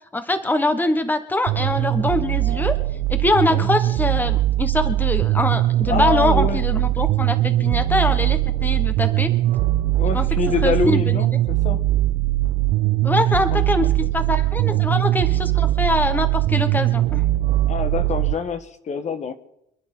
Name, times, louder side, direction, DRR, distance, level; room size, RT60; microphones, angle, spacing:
voice 1, 0.1-2.8 3.1-9.3 10.1-10.3 10.6-11.2 13.0-17.2, left 2 dB, 10° left, 9 dB, 1.3 m, -23 dB
sound 1, 1.5-18.3, right 16 dB, 80° right, 0.9 m, -21 dB
voice 2, 5.9-6.6 9.9-11.8 13.5-14.1 14.6-14.8 17.7-19.3, left 6 dB, 45° left, 9 dB, 1.4 m, -26 dB
27.0 x 10.5 x 3.8 m, 0.78 s
cardioid pair, 110°, 17 cm